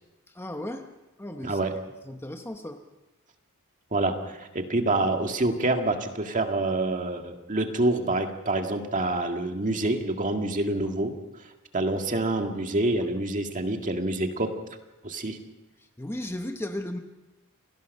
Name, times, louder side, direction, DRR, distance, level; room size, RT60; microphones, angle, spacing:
voice 1, 0.3-0.9 1.2-1.6 2.0-2.8 16.0-17.0, left 1 dB, 10° left, 6 dB, 1.0 m, -35 dB
voice 2, 3.9-11.1 11.7-14.5 15.0-15.4, right 2 dB, 35° right, 4 dB, 1.9 m, -27 dB
28.0 x 18.5 x 5.4 m, 1.0 s
head